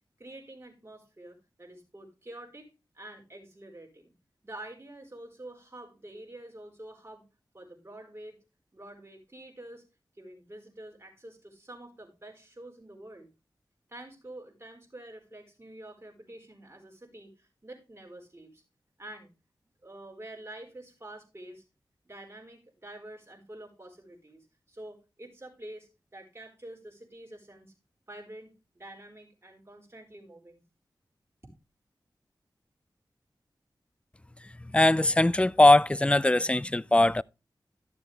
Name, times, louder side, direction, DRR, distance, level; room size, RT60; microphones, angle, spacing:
voice 1, 0.2-4.1 4.4-7.2 7.5-8.4 8.7-9.8 10.1-13.3 13.9-18.6 19.0-19.3 19.8-21.6 22.0-27.7 28.1-30.6, right 1 dB, 30° right, 4.4 m, -47 dB
voice 2, 34.7-37.2, left 1 dB, 15° left, 0.4 m, -21 dB
13.0 x 6.8 x 3.3 m
cardioid pair, 50°, 8 cm